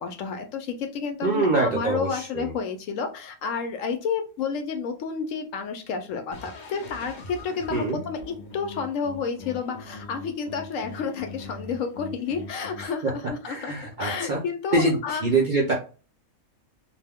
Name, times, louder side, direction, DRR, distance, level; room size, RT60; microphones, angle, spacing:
voice 1, 0.0-8.2 8.5-13.7 14.0-15.2, left 5 dB, 70° left, 6 dB, 0.9 m, -30 dB
voice 2, 1.2-2.5 7.7-8.0 12.8-13.1 13.5-14.4 14.7-15.7, right 3 dB, 55° right, -3 dB, 0.5 m, -24 dB
sound 1, 6.3-12.9, left 3 dB, 50° left, 0.6 m, -42 dB
2.6 x 2.2 x 3.4 m, 0.35 s
omnidirectional pair, 1.5 m